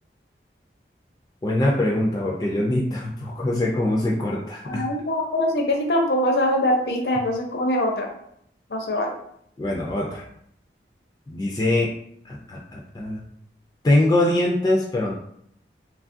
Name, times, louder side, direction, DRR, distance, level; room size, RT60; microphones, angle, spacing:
voice 1, 1.4-4.8 9.6-10.2 11.3-11.9 12.3-13.2 13.8-15.1, left 1 dB, 20° left, -3 dB, 0.3 m, -23 dB
voice 2, 4.6-8.1 8.7-9.2, left 1 dB, 75° left, 1 dB, 0.6 m, -23 dB
3.0 x 2.3 x 2.5 m, 0.70 s
head